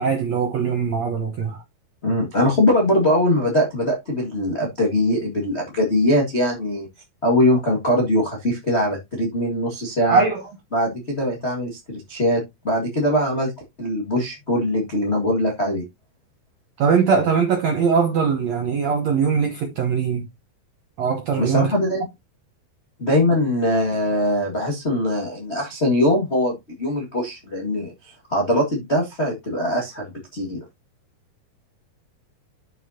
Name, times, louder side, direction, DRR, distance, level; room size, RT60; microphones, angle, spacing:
voice 1, 0.0-1.6 10.1-10.4 16.8-20.2 21.0-21.7, right 6 dB, 70° right, 1.6 m, -21 dB
voice 2, 2.0-6.9 7.2-10.2 10.7-13.5 13.8-15.8 21.4-22.0 23.0-30.1 30.3-30.6, left 1 dB, 40° left, 0.8 m, -21 dB
10.5 x 6.3 x 2.8 m
omnidirectional pair, 4.6 m